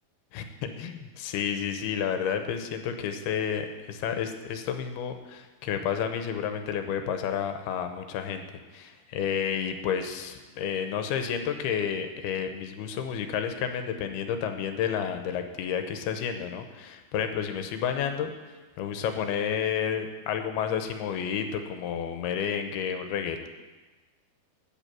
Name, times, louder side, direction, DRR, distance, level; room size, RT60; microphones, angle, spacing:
voice 1, 0.3-8.5 8.7-18.3 18.8-23.5, left 8 dB, 90° left, 7 dB, 2.8 m, -31 dB
9.2 x 8.3 x 8.9 m, 1.2 s
omnidirectional pair, 4.5 m